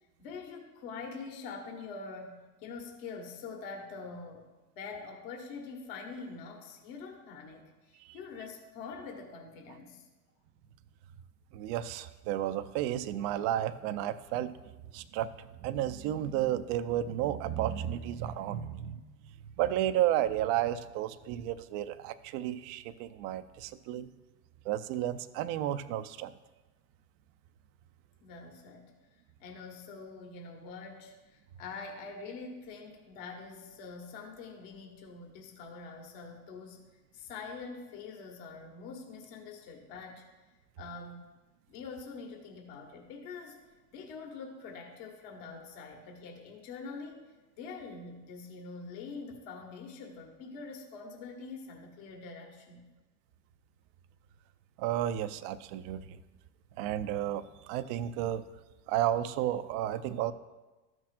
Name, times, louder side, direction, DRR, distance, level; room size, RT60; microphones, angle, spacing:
voice 1, 0.2-4.5 4.7-10.1 28.2-28.9 29.4-36.8 37.1-40.2 40.8-41.3 41.7-43.6 43.9-47.2 47.6-52.9, left 4 dB, 55° left, 2 dB, 1.6 m, -45 dB
voice 2, 11.5-14.5 14.9-19.0 19.6-24.1 24.7-26.3 54.8-56.2 56.8-58.4 58.9-60.3, right 12 dB, 40° right, 12 dB, 0.5 m, -32 dB
13.5 x 6.1 x 2.5 m, 1.2 s
hypercardioid pair, 85°, 50 cm